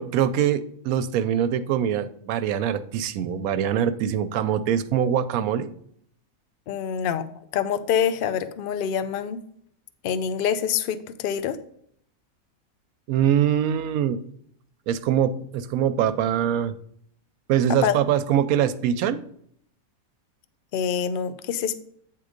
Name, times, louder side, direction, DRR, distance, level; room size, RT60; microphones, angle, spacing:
voice 1, 0.0-5.7 13.1-14.2 14.9-16.7 17.5-19.2, right 9 dB, 90° right, 12 dB, 1.0 m, -23 dB
voice 2, 6.7-7.2 7.5-9.4 10.0-11.6 17.8-18.0 20.7-21.8, left 8 dB, 60° left, 12 dB, 0.6 m, -25 dB
8.8 x 3.8 x 5.1 m, 0.67 s
omnidirectional pair, 1.4 m